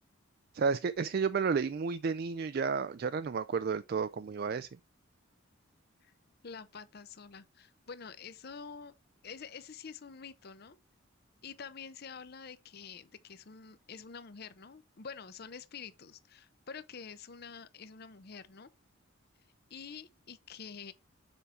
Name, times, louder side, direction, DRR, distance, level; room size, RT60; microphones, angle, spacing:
voice 1, 0.5-4.7, right 5 dB, 45° right, 0.3 m, -31 dB
voice 2, 6.4-8.9 9.2-10.8 11.4-18.7 19.7-20.9, left 6 dB, 50° left, 0.6 m, -47 dB
7.1 x 5.0 x 4.2 m
head